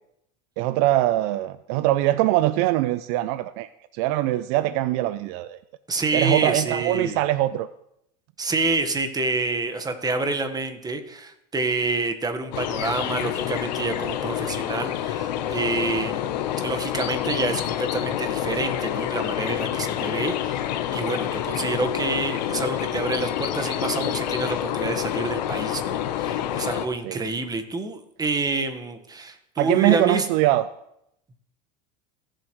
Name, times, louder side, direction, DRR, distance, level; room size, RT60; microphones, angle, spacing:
voice 1, 0.6-3.7 3.9-5.6 6.1-7.7 27.0-27.2 29.6-30.6, right 15 dB, 65° right, 14 dB, 0.5 m, -22 dB
voice 2, 5.9-7.2 8.4-30.3, right 3 dB, 15° right, 7 dB, 1.4 m, -28 dB
sound 1, 12.5-26.9, left 11 dB, 80° left, 1.0 m, -28 dB
16.5 x 7.5 x 3.2 m, 0.78 s
supercardioid pair, 100°, 21 cm